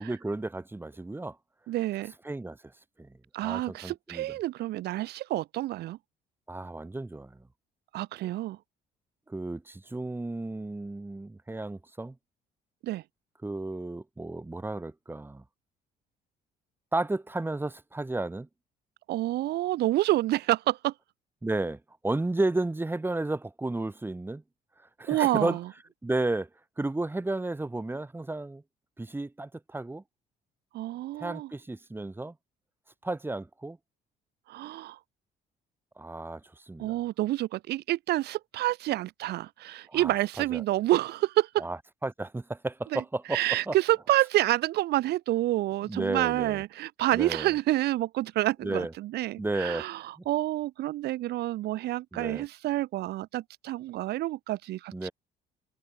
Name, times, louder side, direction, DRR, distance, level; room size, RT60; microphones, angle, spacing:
voice 1, 0.0-1.4 2.2-2.6 3.0-3.1 3.4-4.3 6.5-7.4 9.3-12.2 13.4-15.4 16.9-18.5 21.4-24.4 25.0-25.6 26.0-26.5 26.8-28.6 29.0-30.0 31.2-32.3 33.0-33.8 36.0-37.0 39.9-40.6 41.6-43.8 45.8-46.6 47.1-47.5 48.6-48.9 49.4-49.9 50.2-50.3 52.1-52.5 54.9-55.1, right 2 dB, 10° right, 5.7 m, -33 dB
voice 2, 1.7-2.1 3.3-6.0 7.9-8.6 12.8-13.0 19.1-20.9 25.1-25.6 30.7-31.5 34.5-35.0 36.8-41.6 42.9-43.0 43.3-55.1, right 15 dB, 75° right, 2.3 m, -28 dB
cardioid pair, 110°, 17 cm